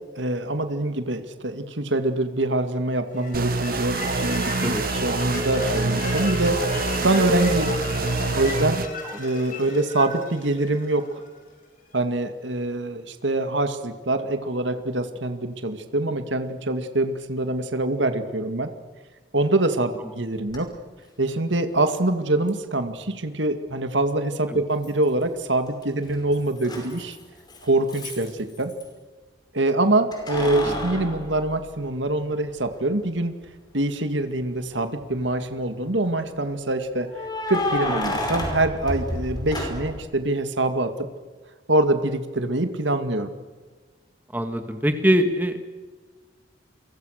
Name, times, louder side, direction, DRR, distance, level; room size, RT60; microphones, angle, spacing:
voice 1, 0.2-6.6 7.0-7.7 8.3-8.8 9.2-11.2 11.9-18.7 19.3-20.7 21.2-27.2 27.6-28.7 29.5-33.3 33.7-37.1 37.5-41.1 41.7-43.3, right 2 dB, 80° right, 8 dB, 2.2 m, -24 dB
sound 1, 3.2-11.3, left 1 dB, 45° left, 5.9 m, -33 dB
sound 2, 3.3-8.9, right 3 dB, 50° right, 1.0 m, -26 dB
Keys jangling, 20.5-20.6 22.5-22.6 24.8-25.4 25.7-28.9 30.1-32.2 32.7-32.8 34.6-35.2 37.1-40.1, left 1 dB, 20° left, 5.5 m, -31 dB
voice 2, 44.3-45.6, equal, 10° right, 7 dB, 1.9 m, -22 dB
29.0 x 24.0 x 6.7 m, 1.4 s
head